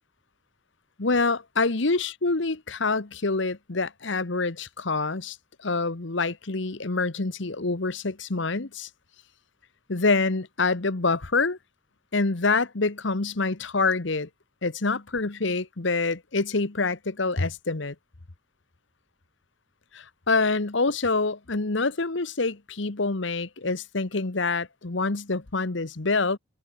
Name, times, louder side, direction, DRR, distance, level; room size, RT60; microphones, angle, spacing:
voice 1, 1.0-5.4 5.6-8.9 9.9-11.6 12.1-14.3 14.6-17.9 19.9-26.4, left 3 dB, 65° left, 1.2 m, -26 dB
open air
head